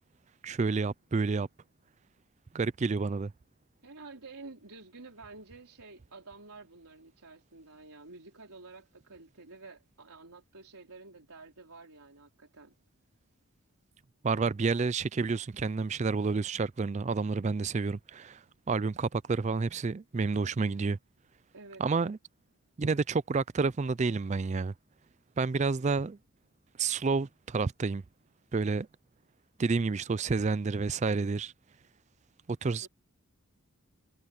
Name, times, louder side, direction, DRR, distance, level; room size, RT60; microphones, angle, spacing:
voice 1, 0.4-1.5 2.5-3.3 14.2-18.4 18.7-21.0 21.8-22.2 22.8-24.7 25.4-26.2 26.8-28.0 28.5-28.9 29.6-31.5 32.6-32.9, right 4 dB, 30° right, 0.4 m, -29 dB
voice 2, 3.8-12.7 21.5-21.8 32.8-32.9, right 3 dB, 90° right, 4.2 m, -50 dB
head